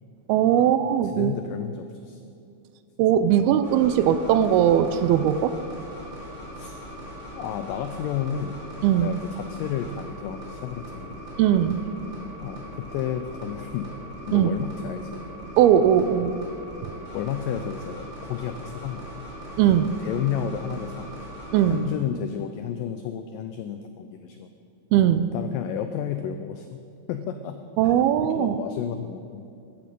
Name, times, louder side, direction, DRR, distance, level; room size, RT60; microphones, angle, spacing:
voice 1, 0.3-1.3 3.0-5.5 8.8-9.1 11.4-12.0 14.3-14.5 15.6-16.4 16.8-16.9 19.6-19.9 21.5-21.8 24.9-25.3 27.8-28.6, right 10 dB, 80° right, 12 dB, 2.4 m, -20 dB
voice 2, 1.1-2.2 6.6-6.8 7.3-8.6 9.0-11.2 12.4-13.9 14.3-15.2 17.1-19.2 19.7-21.1 21.7-24.5 25.3-26.8 27.1-27.6 28.3-29.4, left 9 dB, 90° left, 8 dB, 1.9 m, -32 dB
sound 1, 3.6-21.8, equal, 25° right, 3.9 m, -40 dB
14.5 x 13.5 x 5.3 m, 2.5 s
omnidirectional pair, 4.6 m